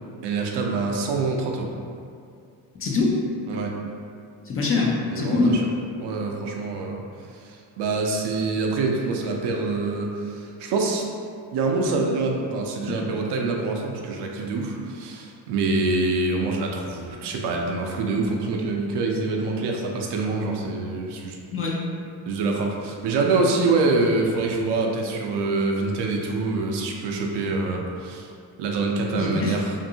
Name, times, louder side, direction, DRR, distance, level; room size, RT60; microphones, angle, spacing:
voice 1, 0.2-1.7 3.5-3.7 5.1-5.7 6.0-7.0 7.3-11.1 11.5-21.4 22.3-28.3 28.6-29.7, right 3 dB, 60° right, 1 dB, 0.6 m, -25 dB
voice 2, 2.8-3.2 4.5-5.6 21.5-21.8 29.1-29.6, left 3 dB, 30° left, -2 dB, 0.5 m, -23 dB
2.6 x 2.5 x 2.7 m, 2.3 s
supercardioid pair, 80°, 48 cm